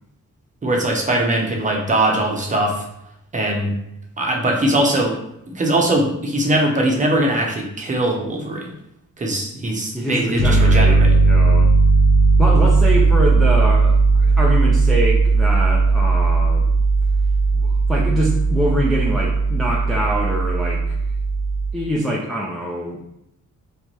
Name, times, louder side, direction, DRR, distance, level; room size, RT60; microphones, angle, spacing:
voice 1, 0.6-2.8 3.3-3.7 4.2-5.2 5.5-8.7 9.2-11.1, right 1 dB, 25° right, 0 dB, 0.8 m, -21 dB
voice 2, 9.9-11.7 12.4-16.7 17.5-21.0 21.7-23.0, equal, ahead, -4 dB, 0.4 m, -24 dB
Piano, 10.4-21.7, right 3 dB, 75° left, 0.8 m, -16 dB
4.4 x 3.4 x 3.1 m, 0.83 s
wide cardioid pair, 170°, 31 cm